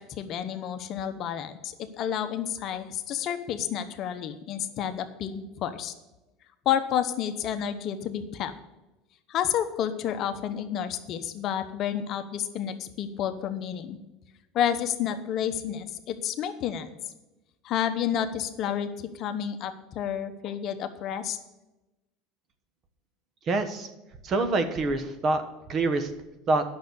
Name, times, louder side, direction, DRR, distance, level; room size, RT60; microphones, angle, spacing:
voice 1, 0.2-5.9 6.6-8.5 9.3-14.0 14.5-16.9 17.6-21.4, left 9 dB, 45° left, 9 dB, 0.9 m, -30 dB
voice 2, 23.5-23.9 24.2-25.4 25.7-26.1 26.5-26.6, right 3 dB, 35° right, 9 dB, 1.3 m, -25 dB
9.3 x 6.5 x 8.2 m, 1.0 s
supercardioid pair, 130°, 0 cm